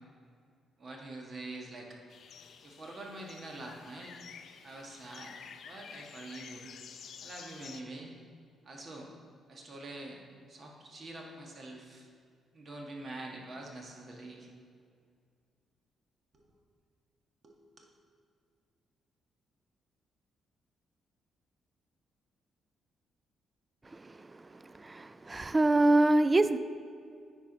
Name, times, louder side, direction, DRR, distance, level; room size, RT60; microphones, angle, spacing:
voice 1, 0.8-2.0 2.6-4.2 4.6-5.3 5.6-6.6 7.2-8.1 8.6-9.1 9.5-10.2 10.5-12.1 12.5-14.5 16.3-16.4 17.4-17.6, right 2 dB, 50° right, 0 dB, 1.4 m, -45 dB
sound 1, 2.1-7.8, left 7 dB, 65° left, 0.4 m, -50 dB
voice 2, 23.9-26.6, right 2 dB, 25° right, 13 dB, 0.3 m, -26 dB
9.3 x 4.6 x 3.9 m, 2.2 s
supercardioid pair, 55°, 0 cm